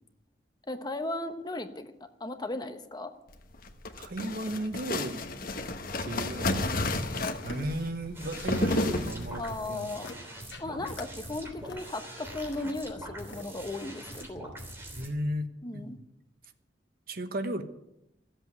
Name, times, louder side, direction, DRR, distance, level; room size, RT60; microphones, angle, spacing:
voice 1, 0.7-1.9 2.2-3.1 9.4-10.1 10.6-14.5 15.6-16.0, left 2 dB, 25° left, 8 dB, 1.0 m, -36 dB
sound 1, 3.5-9.6, left 2 dB, 50° left, 1.3 m, -31 dB
voice 2, 4.0-5.3 6.0-6.8 7.4-9.4 9.7-9.9 14.9-15.5 15.7-16.0 17.1-17.6, right 1 dB, 55° right, 8 dB, 1.2 m, -34 dB
sound 2, 7.1-8.7 8.9-9.4 9.8-10.2 10.5-11.1 11.4-13.4 14.0-14.6 15.0-15.1, left 2 dB, 80° left, 1.6 m, -47 dB
sound 3, 8.1-15.1, right 1 dB, 15° right, 3.3 m, -44 dB
15.5 x 8.0 x 9.6 m, 0.87 s
head